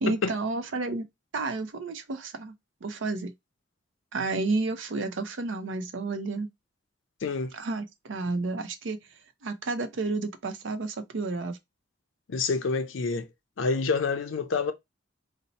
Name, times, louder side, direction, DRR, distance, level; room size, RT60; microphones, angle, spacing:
voice 1, 0.0-1.0 1.3-2.5 2.8-3.3 4.1-6.5 7.5-11.6, right 3 dB, 70° right, 0.5 m, -31 dB
voice 2, 7.2-7.5 12.3-13.3 13.6-14.7, left 4 dB, 80° left, 0.5 m, -27 dB
2.7 x 2.1 x 4.0 m
head